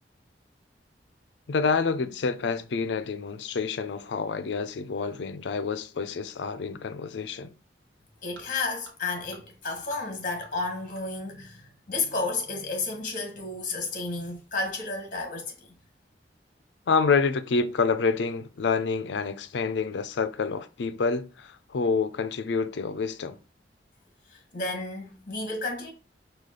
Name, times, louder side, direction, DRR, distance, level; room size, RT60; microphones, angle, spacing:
voice 1, 1.5-7.5 16.9-23.4, left 5 dB, 85° left, 0.5 m, -28 dB
voice 2, 8.2-15.7 24.3-25.9, left 3 dB, 50° left, 1.4 m, -32 dB
sound 1, 8.3-8.5 8.8-8.9 9.3-9.4 9.7-10.0 10.2-10.5 10.9-11.0 11.4-11.5, right 3 dB, 90° right, 1.3 m, -49 dB
4.9 x 2.4 x 3.7 m
head